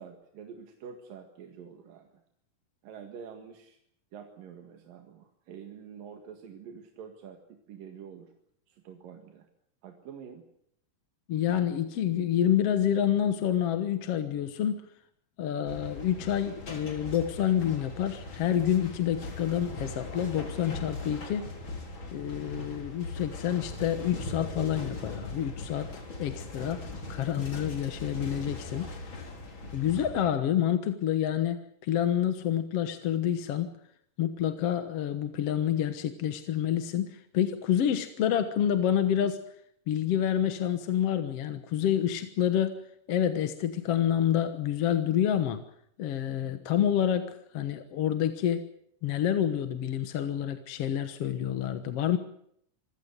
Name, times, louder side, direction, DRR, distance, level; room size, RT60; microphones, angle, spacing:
voice 1, 0.0-2.1 2.8-3.8 4.1-8.3 8.7-9.5 9.8-10.4, right 7 dB, 90° right, 5 dB, 3.6 m, -47 dB
voice 2, 11.3-14.8 15.4-21.5 22.1-25.9 26.2-26.8 27.1-29.3 29.7-33.7 34.2-39.4 39.9-42.8 43.1-45.6 46.0-48.7 49.0-52.2, left 10 dB, 55° left, 9 dB, 1.9 m, -28 dB
sound 1, 15.7-30.2, left 2 dB, 35° left, 4.3 m, -40 dB
26.5 x 16.5 x 8.1 m, 0.70 s
omnidirectional pair, 3.8 m